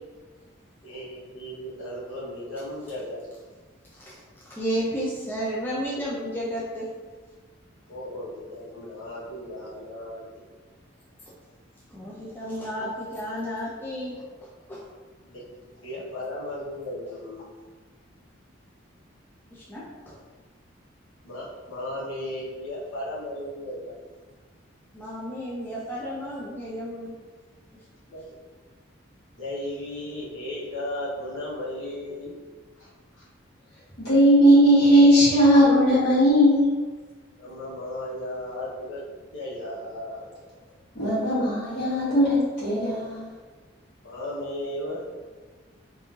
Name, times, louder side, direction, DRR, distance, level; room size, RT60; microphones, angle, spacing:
voice 1, 0.8-3.5 7.9-10.2 15.2-15.4 15.8-17.5 21.2-23.9 28.1-28.2 29.3-32.3 32.8-32.9 33.2-33.3 37.4-39.0 39.3-40.3 44.0-45.1, left 1 dB, 85° left, -8 dB, 0.9 m, -35 dB
voice 2, 4.5-6.9 11.9-14.8 19.5-20.2 24.9-27.1, equal, 10° left, -7 dB, 0.3 m, -32 dB
voice 3, 34.0-36.7 40.9-43.3, equal, 55° left, -10 dB, 1.3 m, -18 dB
3.0 x 2.5 x 2.4 m, 1.4 s
head